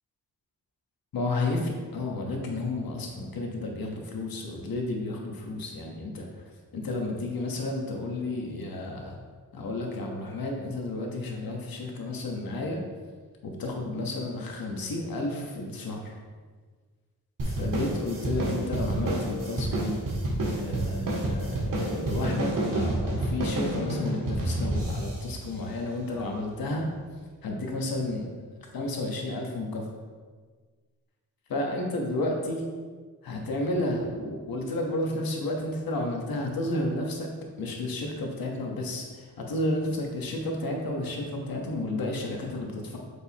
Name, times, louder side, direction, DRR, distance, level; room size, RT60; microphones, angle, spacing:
voice 1, 1.1-6.4 6.7-9.2 9.5-12.8 13.4-16.2 17.4-20.0 20.6-26.9 27.4-28.3 28.6-29.9 31.5-32.6 33.2-37.3 37.6-43.0, left 2 dB, 75° left, 0 dB, 1.4 m, -32 dB
sound 1, 17.4-26.2, right 1 dB, 65° right, 2.0 m, -29 dB
8.1 x 5.3 x 3.0 m, 1.5 s
wide cardioid pair, 105°, 35 cm